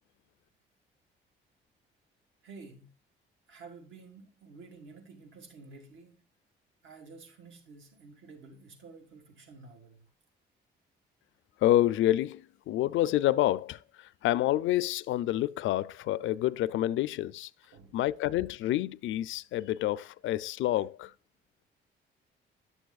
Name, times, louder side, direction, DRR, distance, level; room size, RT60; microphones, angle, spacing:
voice 1, 2.4-2.9 3.5-6.2 6.8-10.0 17.7-17.9, right 4 dB, 75° right, 1.8 m, -51 dB
voice 2, 11.6-13.8 14.2-17.5 17.9-21.1, left 14 dB, 75° left, 0.4 m, -28 dB
10.0 x 6.9 x 2.4 m
cardioid pair, 90°, 20 cm